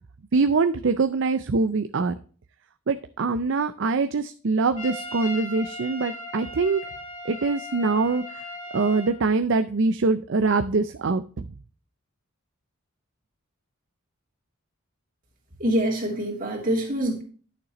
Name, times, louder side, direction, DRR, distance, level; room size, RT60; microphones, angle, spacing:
voice 1, 0.3-2.1 2.9-6.8 7.2-8.2 8.7-11.4, right 4 dB, 55° right, 10 dB, 0.5 m, -23 dB
Trumpet, 4.8-9.2, left 2 dB, 30° left, 2.6 m, -37 dB
voice 2, 15.6-17.2, right 1 dB, 40° right, -1 dB, 2.8 m, -25 dB
11.0 x 6.8 x 3.0 m, 0.41 s
head